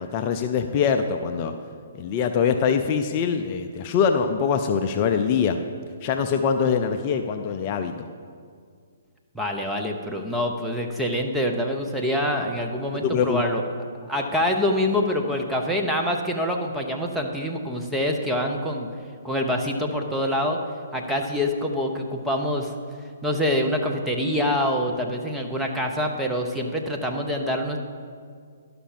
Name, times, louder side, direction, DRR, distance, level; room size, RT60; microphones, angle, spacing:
voice 1, 0.0-1.5 2.0-5.6 6.0-8.1 13.0-13.4, left 6 dB, 35° left, 6 dB, 0.5 m, -23 dB
voice 2, 9.3-13.6 14.1-18.9 19.2-20.6 20.9-22.7 23.2-27.8, left 1 dB, 5° right, 1 dB, 1.0 m, -25 dB
11.5 x 6.0 x 7.3 m, 2.1 s
figure-of-eight pair, 130°, 0 cm